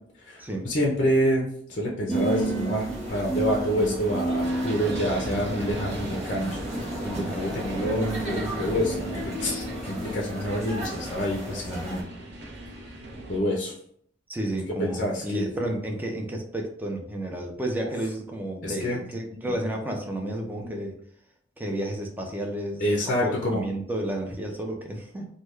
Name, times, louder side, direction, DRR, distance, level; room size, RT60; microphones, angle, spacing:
voice 1, 0.3-12.0 13.3-13.7 14.8-15.5 17.8-17.9 18.6-19.0 19.4-19.5 20.6-20.7 22.8-23.6, equal, 45° left, -1 dB, 0.5 m, -27 dB
sound 1, 2.1-12.0, right 1 dB, 40° right, 0.9 m, -32 dB
sound 2, 4.4-13.4, right 1 dB, 65° right, 0.7 m, -40 dB
voice 2, 14.3-20.9 21.6-22.8 23.2-25.3, right 1 dB, 10° right, 1 dB, 0.5 m, -31 dB
3.4 x 2.2 x 3.1 m, 0.63 s
head